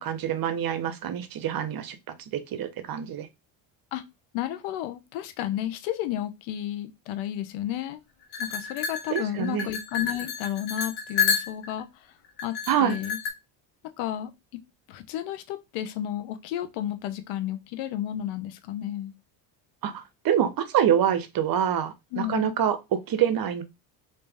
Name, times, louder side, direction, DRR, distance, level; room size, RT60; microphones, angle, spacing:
voice 1, 0.0-2.0 2.3-3.3 9.1-9.7 12.7-13.0 19.8-23.6, right 9 dB, 45° right, 0.8 m, -26 dB
voice 2, 4.3-8.0 8.4-12.1 12.4-13.2 14.0-14.3 14.9-19.1 22.1-22.5, left 12 dB, 80° left, 0.8 m, -32 dB
sound 1, 8.3-11.8 12.4-13.3, left 6 dB, 55° left, 1.4 m, -29 dB
3.2 x 2.8 x 3.4 m
supercardioid pair, 80°, 47 cm